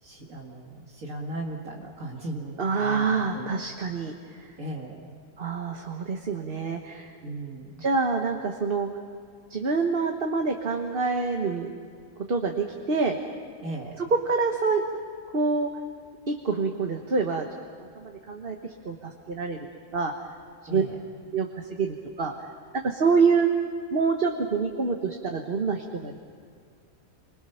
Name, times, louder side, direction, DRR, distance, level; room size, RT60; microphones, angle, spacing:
voice 1, 0.0-3.6 4.6-5.0 7.2-7.8 13.6-14.0 20.7-21.0, right 1 dB, 70° right, -1 dB, 2.6 m, -37 dB
voice 2, 2.6-4.5 5.4-7.1 7.8-8.9 9.5-11.7 12.3-13.2 14.0-14.8 15.3-15.7 16.3-17.5 17.8-19.6 19.9-20.1 20.6-20.8 21.3-22.3 22.8-23.5 23.9-26.2, right 4 dB, 45° right, 3 dB, 1.4 m, -26 dB
28.5 x 25.0 x 5.8 m, 2.2 s
omnidirectional pair, 1.5 m